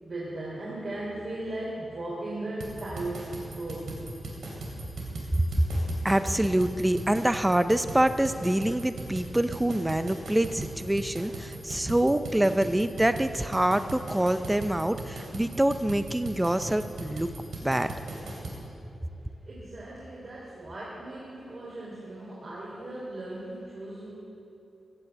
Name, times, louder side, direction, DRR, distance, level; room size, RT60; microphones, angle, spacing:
voice 1, 0.0-3.9 19.4-24.1, right 1 dB, 45° right, -6 dB, 3.3 m, -37 dB
sound 1, 2.6-18.6, right 2 dB, 85° right, 3.4 m, -38 dB
voice 2, 5.7-17.3 17.6-17.9, right 1 dB, 10° right, 10 dB, 0.5 m, -26 dB
15.5 x 9.7 x 7.9 m, 2.9 s
wide cardioid pair, 145°, 0 cm